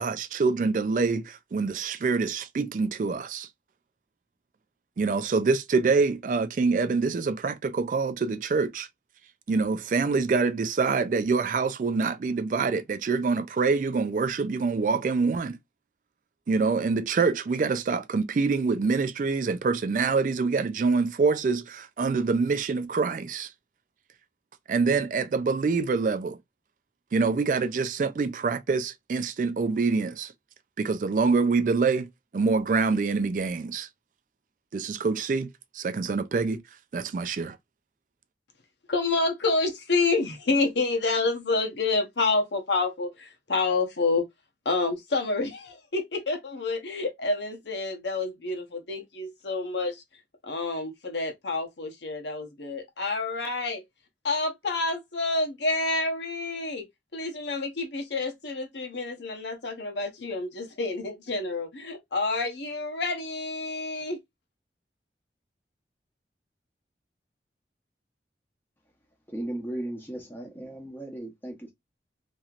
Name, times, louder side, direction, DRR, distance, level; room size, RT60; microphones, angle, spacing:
voice 1, 0.0-3.5 5.0-8.9 9.5-15.6 16.5-23.5 24.7-26.4 27.1-30.3 30.8-32.1 32.3-33.9 34.7-35.5 35.7-36.6 36.9-37.6, right 4 dB, 45° right, 0.3 m, -25 dB
voice 2, 38.9-44.2 44.6-50.0 50.4-53.8 54.2-56.8 57.1-64.2, left 3 dB, 85° left, 0.9 m, -28 dB
voice 3, 69.3-71.7, right 1 dB, 10° left, 0.8 m, -36 dB
3.1 x 2.7 x 2.4 m
head